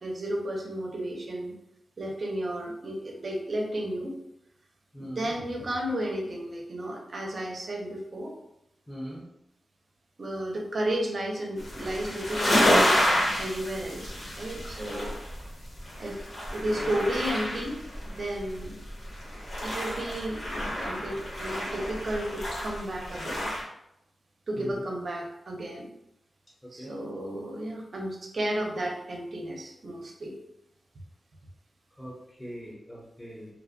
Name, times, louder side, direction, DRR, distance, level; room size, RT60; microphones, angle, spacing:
voice 1, 0.0-1.6 2.0-4.2 5.0-8.4 10.2-13.0 13.4-15.2 16.0-16.2 16.5-18.8 19.6-20.4 20.8-23.5 24.5-25.9 26.7-30.4, right 1 dB, 55° right, 1 dB, 0.5 m, -33 dB
voice 2, 4.9-5.3 8.9-9.2 24.6-24.8 26.8-26.9 32.0-32.1 32.4-33.5, equal, 5° left, -6 dB, 0.6 m, -40 dB
sound 1, 11.6-23.6, equal, 55° left, 0.9 m, -29 dB
2.4 x 2.1 x 2.6 m, 0.81 s
wide cardioid pair, 85°, 0 cm